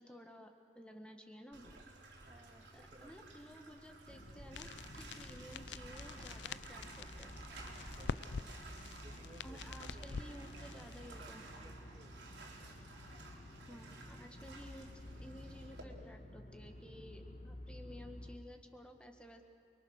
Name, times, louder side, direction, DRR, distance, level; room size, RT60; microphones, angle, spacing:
voice 1, 0.0-1.8 2.7-7.4 9.4-11.4 13.7-14.9 15.1-19.4, equal, 5° left, 4 dB, 1.6 m, -54 dB
Bathtub (filling or washing), 1.5-15.8, right 3 dB, 85° right, 4.0 m, -55 dB
voice 2, 2.2-3.2 7.5-8.6 9.0-12.3, right 1 dB, 30° right, 4 dB, 2.0 m, -61 dB
sound 1, 4.1-18.4, equal, 40° left, 1.5 m, -52 dB
sound 2, 4.5-11.1, left 5 dB, 80° left, 0.5 m, -47 dB
29.0 x 22.5 x 6.5 m, 2.8 s
head